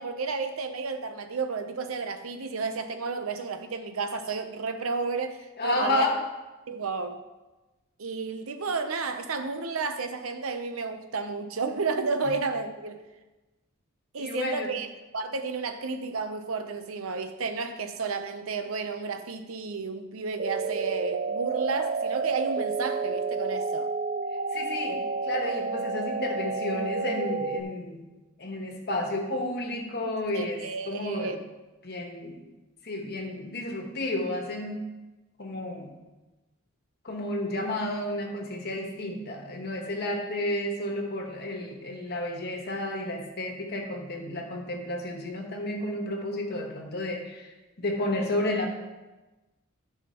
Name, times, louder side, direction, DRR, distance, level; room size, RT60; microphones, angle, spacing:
voice 1, 0.0-6.1 6.7-7.2 8.0-13.0 14.1-14.9 15.1-23.9 30.3-31.4, right 4 dB, 85° right, 8 dB, 0.8 m, -32 dB
voice 2, 5.6-6.2 14.2-14.7 24.5-28.0 28.4-31.4 31.8-32.4 32.8-34.9 35.4-35.9 37.0-47.5 47.8-48.7, left 1 dB, 50° left, 2 dB, 1.4 m, -31 dB
sound 1, 20.4-27.6, right 4 dB, 40° right, 0.5 m, -30 dB
13.5 x 5.8 x 3.0 m, 1.1 s
head